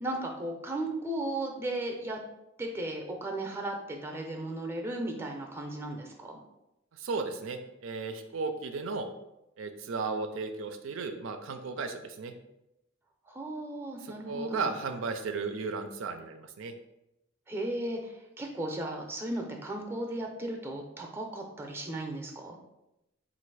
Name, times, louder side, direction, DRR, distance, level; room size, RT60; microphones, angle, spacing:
voice 1, 0.0-2.2 2.6-6.4 13.3-14.7 17.5-22.5, right 1 dB, 10° right, 2 dB, 0.5 m, -35 dB
voice 2, 6.9-9.1 9.6-12.3 14.0-16.7, right 4 dB, 85° right, 7 dB, 0.4 m, -35 dB
4.0 x 2.5 x 4.6 m, 0.90 s
head